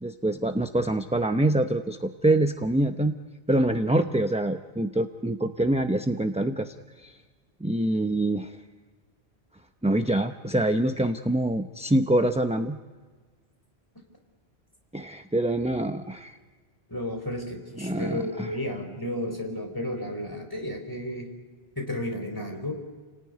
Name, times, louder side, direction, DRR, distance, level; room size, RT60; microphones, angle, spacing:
voice 1, 0.0-3.1 3.5-6.7 7.0-7.1 7.6-8.5 9.8-12.8 14.9-16.4 17.8-18.5, right 1 dB, 5° right, 6 dB, 0.7 m, -25 dB
voice 2, 16.9-21.3 21.8-22.7, left 1 dB, 20° left, 3 dB, 4.3 m, -32 dB
30.0 x 19.0 x 9.6 m, 1.4 s
omnidirectional pair, 1.1 m